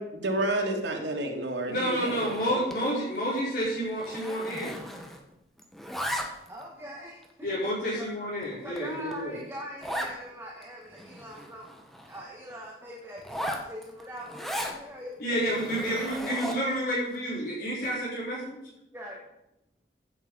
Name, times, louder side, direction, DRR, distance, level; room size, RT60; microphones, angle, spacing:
voice 1, 0.0-2.6, right 1 dB, 90° right, 1 dB, 2.7 m, -30 dB
voice 2, 1.7-4.8 7.4-9.4 15.2-18.6, equal, 55° left, -7 dB, 4.5 m, -30 dB
Zipper (clothing), 1.8-2.9 3.2-3.4 3.6-5.3 5.6-6.6 7.2-7.3 7.9-8.0 8.4-8.5 8.8-8.9 9.1-9.2 9.8-10.2 10.6-10.7 10.9-12.2 13.2-14.8 15.4-16.8, equal, ahead, 1.4 m, -37 dB
voice 3, 6.5-7.3 7.6-8.1 8.6-11.7 12.1-15.7 18.9-19.2, equal, 15° right, -2 dB, 1.7 m, -42 dB
15.5 x 8.0 x 5.5 m, 0.84 s
head